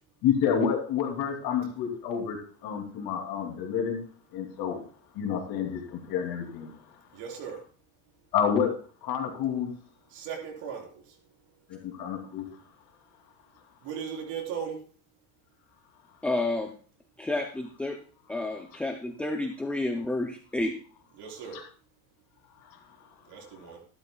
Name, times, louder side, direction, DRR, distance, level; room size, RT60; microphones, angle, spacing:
voice 1, 0.2-4.0 4.3-4.8 5.1-6.7 8.3-8.7 9.0-9.7 11.7-12.4 21.5-21.6, left 7 dB, 55° left, 2 dB, 2.9 m, -29 dB
voice 2, 7.1-7.6 10.1-10.9 13.8-14.8 21.2-21.6 23.3-23.8, right 7 dB, 55° right, -1 dB, 4.2 m, -37 dB
voice 3, 16.2-16.7 17.2-18.0 18.3-20.7, left 2 dB, 5° left, 4 dB, 0.4 m, -30 dB
14.0 x 12.0 x 2.3 m, 0.40 s
cardioid pair, 160°, 45 cm